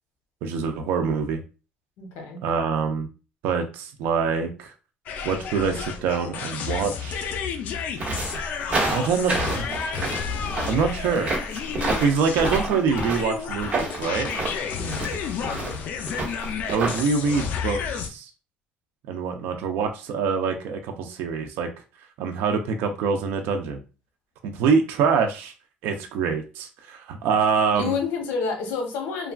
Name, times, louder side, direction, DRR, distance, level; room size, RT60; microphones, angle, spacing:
voice 1, 0.4-1.4 2.4-3.1 3.4-4.7 5.2-7.3 8.9-9.7 10.7-11.3 12.0-14.3 16.7-18.3 19.1-21.7 22.2-23.8 24.4-25.5 25.8-28.0, right 5 dB, 80° right, 5 dB, 0.4 m, -25 dB
voice 2, 2.0-2.4 14.7-15.1 15.4-15.8 27.7-29.3, left 5 dB, 85° left, 3 dB, 0.9 m, -29 dB
sound 1, 5.1-18.1, left 6 dB, 55° left, 0.4 m, -31 dB
sound 2, 8.0-17.0, right 2 dB, 40° right, 1.1 m, -29 dB
3.1 x 2.3 x 2.2 m, 0.33 s
cardioid pair, 140°, 3 cm